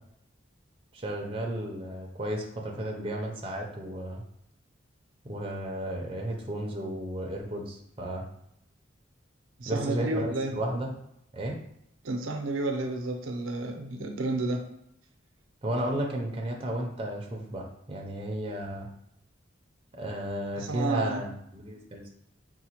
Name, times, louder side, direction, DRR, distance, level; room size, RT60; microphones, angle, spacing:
voice 1, 0.9-4.2 5.2-8.3 9.7-10.9 11.3-11.6 15.6-18.9 20.0-22.1, right 1 dB, 25° right, 0 dB, 0.5 m, -33 dB
voice 2, 9.6-10.6 12.0-14.7 20.5-21.2, right 2 dB, 85° right, 4 dB, 0.5 m, -31 dB
4.9 x 2.1 x 2.9 m, 0.77 s
head